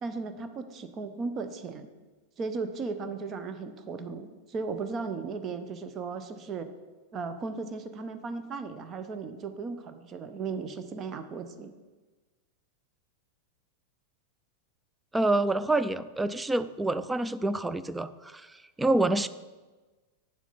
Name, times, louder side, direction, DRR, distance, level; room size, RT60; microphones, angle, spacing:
voice 1, 0.0-1.9 2.4-6.7 7.1-11.7, right 4 dB, 30° right, 9 dB, 0.7 m, -36 dB
voice 2, 15.1-19.3, right 2 dB, 10° right, 13 dB, 0.4 m, -27 dB
8.6 x 7.2 x 4.1 m, 1.3 s
figure-of-eight pair, 90°, 0 cm